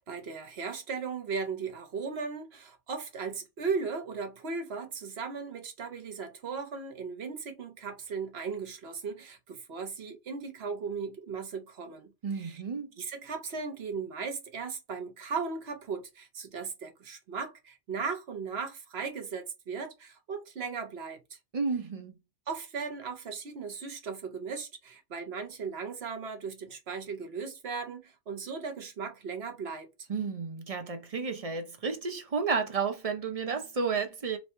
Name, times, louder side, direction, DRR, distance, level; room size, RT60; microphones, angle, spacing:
voice 1, 0.0-12.6 13.0-21.4 22.5-30.1, right 5 dB, 60° right, 1.1 m, -37 dB
voice 2, 12.2-12.9 21.5-22.1 30.1-34.4, right 5 dB, 40° right, 0.6 m, -32 dB
3.1 x 2.7 x 4.2 m
omnidirectional pair, 1.2 m